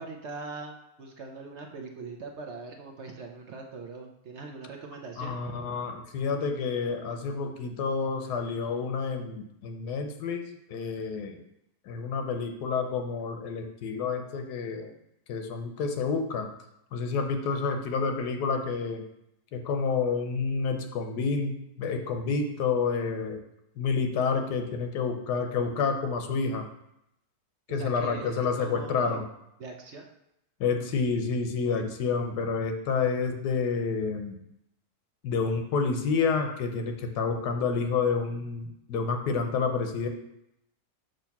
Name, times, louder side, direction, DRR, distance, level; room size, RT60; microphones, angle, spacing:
voice 1, 0.0-5.4 27.7-29.2 29.6-30.1, right 4 dB, 55° right, 2 dB, 0.8 m, -41 dB
voice 2, 5.2-10.4 10.7-11.4 11.9-14.9 15.3-16.5 16.9-19.0 19.5-23.4 23.8-26.6 27.7-29.2 30.6-34.4 35.2-40.1, left 5 dB, 90° left, 5 dB, 1.3 m, -29 dB
6.4 x 2.9 x 5.8 m, 0.81 s
omnidirectional pair, 1.7 m